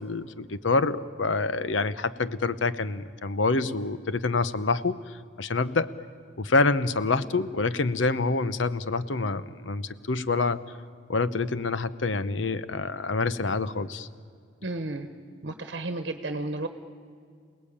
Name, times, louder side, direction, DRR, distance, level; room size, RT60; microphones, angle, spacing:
voice 1, 0.0-5.9 6.4-10.6 11.1-14.1, left 3 dB, 85° left, 14 dB, 0.8 m, -27 dB
voice 2, 14.6-15.1 15.4-16.7, right 2 dB, 65° right, 8 dB, 1.2 m, -32 dB
28.0 x 18.5 x 8.6 m, 2.2 s
head